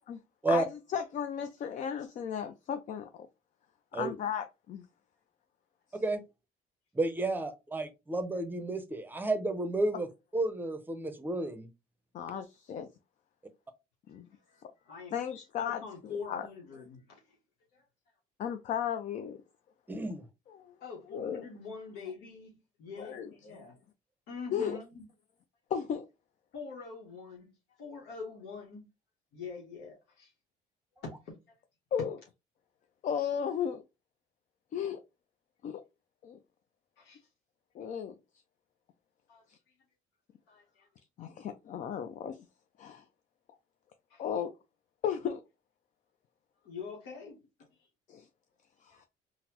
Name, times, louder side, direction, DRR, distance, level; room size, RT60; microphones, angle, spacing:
voice 1, 0.5-3.3 3.9-4.9 12.1-12.9 14.1-14.3 15.1-15.8 16.3-16.5 18.4-19.4 20.5-20.7 21.1-21.4 23.0-23.3 24.5-24.8 25.7-26.1 31.9-32.2 33.0-33.8 34.7-35.0 35.6-35.8 36.2-36.4 37.7-38.1 39.5-39.6 41.2-42.5 42.8-43.0 44.2-44.5 45.0-45.4 48.1-48.3 48.8-49.1, left 8 dB, 50° left, 0.4 m, -35 dB
voice 2, 6.9-10.1 10.3-11.7 19.9-20.2, right 2 dB, 10° right, 0.6 m, -31 dB
voice 3, 14.1-17.4 17.7-17.8 20.8-23.8 24.3-25.0 26.5-28.9 29.3-30.3 31.0-31.6 37.0-37.3 39.3-39.4 40.5-40.9 44.1-44.2 46.6-47.4 47.7-47.9 48.9-49.1, left 5 dB, 80° left, 1.0 m, -45 dB
3.9 x 2.1 x 2.8 m
cardioid pair, 110°, 17 cm